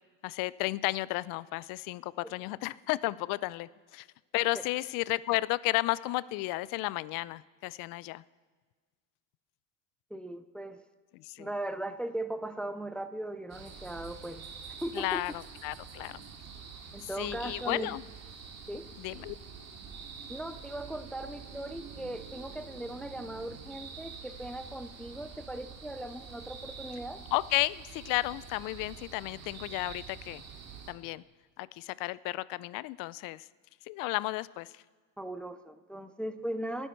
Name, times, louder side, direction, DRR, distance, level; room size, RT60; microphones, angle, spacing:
voice 1, 0.2-4.1 4.3-8.2 11.1-11.5 14.9-16.2 17.2-18.0 19.0-19.4 27.3-30.4 30.9-31.2 31.6-33.4 33.9-34.7, left 19 dB, 60° left, 20 dB, 0.5 m, -33 dB
voice 2, 10.1-10.8 11.4-14.4 14.8-15.2 16.9-17.9 18.7-18.9 20.3-27.2 35.2-36.9, right 1 dB, 5° left, 11 dB, 0.4 m, -38 dB
sound 1, 13.5-30.9, right 6 dB, 40° right, 2.5 m, -47 dB
28.5 x 9.9 x 4.6 m, 1.5 s
supercardioid pair, 125°, 38 cm